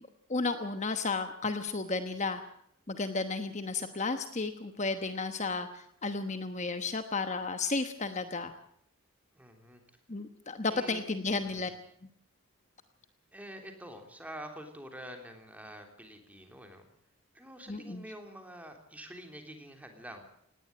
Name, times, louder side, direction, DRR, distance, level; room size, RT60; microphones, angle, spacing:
voice 1, 0.3-2.4 2.9-8.5 10.1-11.7 17.7-18.0, left 3 dB, 30° left, 8 dB, 1.1 m, -33 dB
voice 2, 9.3-9.8 10.7-11.0 11.4-11.8 13.3-16.9 17.3-20.2, equal, 5° right, 4 dB, 3.4 m, -47 dB
19.0 x 18.0 x 8.9 m, 0.70 s
head